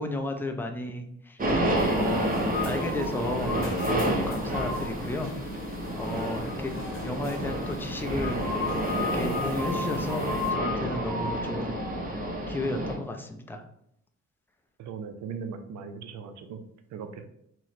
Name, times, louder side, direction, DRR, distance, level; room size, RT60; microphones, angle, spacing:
voice 1, 0.0-1.4 1.9-2.4 2.6-3.6 3.9-5.3 6.0-6.7 7.0-8.4 9.0-11.8 12.5-13.6, left 1 dB, 5° left, 4 dB, 0.4 m, -33 dB
sound 1, 1.4-13.0, equal, 30° right, 0.7 m, -29 dB
sound 2, 1.7-10.5, left 4 dB, 40° left, 0.9 m, -42 dB
voice 2, 14.8-16.6 16.9-17.3, right 6 dB, 65° right, 7 dB, 0.5 m, -38 dB
2.9 x 2.1 x 4.0 m, 0.73 s
cardioid pair, 90°, 30 cm